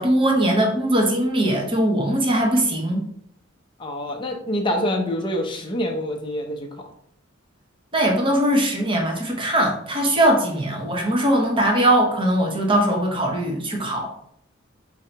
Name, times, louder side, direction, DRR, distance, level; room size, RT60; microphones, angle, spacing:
voice 1, 0.0-3.0 7.9-14.1, right 1 dB, 25° right, 1 dB, 0.8 m, -20 dB
voice 2, 3.8-6.7, left 1 dB, 25° left, 0 dB, 0.6 m, -26 dB
3.8 x 2.8 x 4.4 m, 0.69 s
head